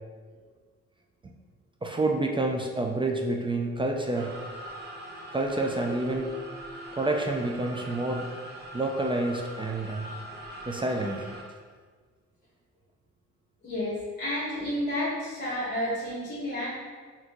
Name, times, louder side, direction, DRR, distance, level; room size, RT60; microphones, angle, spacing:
voice 1, 1.8-4.3 5.3-6.3 6.9-8.3 8.7-10.1 10.7-11.3, right 2 dB, 15° right, 1 dB, 0.3 m, -28 dB
sound 1, 4.1-11.4, right 1 dB, 35° right, 0.7 m, -42 dB
voice 2, 13.6-16.7, left 1 dB, 35° left, -9 dB, 1.3 m, -31 dB
4.1 x 2.8 x 2.9 m, 1.5 s
cardioid pair, 90°, 30 cm